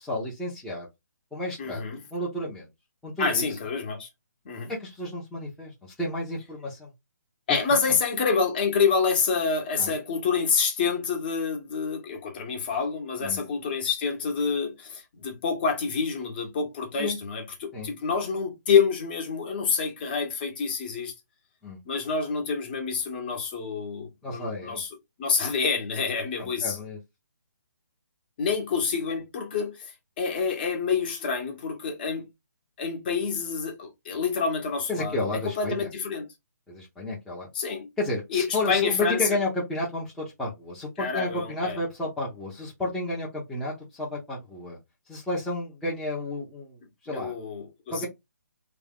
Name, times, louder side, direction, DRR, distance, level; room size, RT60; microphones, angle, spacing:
voice 1, 0.1-0.9 1.3-1.8 2.1-2.7 3.0-3.5 4.7-6.9 9.8-9.9 13.2-13.4 17.0-17.2 17.7-17.9 21.6-21.8 24.2-24.8 26.4-27.0 34.9-35.9 36.7-37.5 38.0-44.8 45.1-46.8 47.0-47.3 47.9-48.1, left 1 dB, 5° left, 0.7 m, -31 dB
voice 2, 1.6-2.0 3.2-4.1 4.4-4.7 7.5-21.1 21.8-24.9 25.2-26.8 28.4-32.3 32.8-35.3 35.5-36.3 37.5-37.9 38.3-39.4 41.0-41.8 47.1-48.1, left 5 dB, 30° left, 1.1 m, -27 dB
3.4 x 2.3 x 3.5 m
hypercardioid pair, 165°, 10 cm